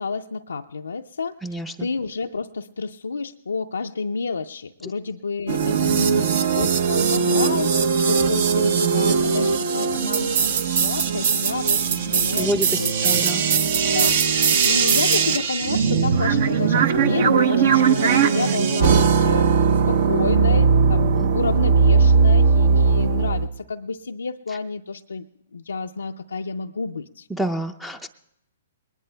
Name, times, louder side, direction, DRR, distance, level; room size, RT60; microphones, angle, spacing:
voice 1, 0.0-13.2 13.8-25.2 25.5-27.3, left 4 dB, 85° left, 3 dB, 0.4 m, -30 dB
voice 2, 1.4-1.9 12.4-13.4 21.2-21.3 27.3-28.1, right 1 dB, 5° right, 10 dB, 0.5 m, -28 dB
sound 1, 5.5-23.5, right 5 dB, 55° right, 0.9 m, -19 dB
21.0 x 19.5 x 2.2 m, 0.83 s
hypercardioid pair, 130°, 0 cm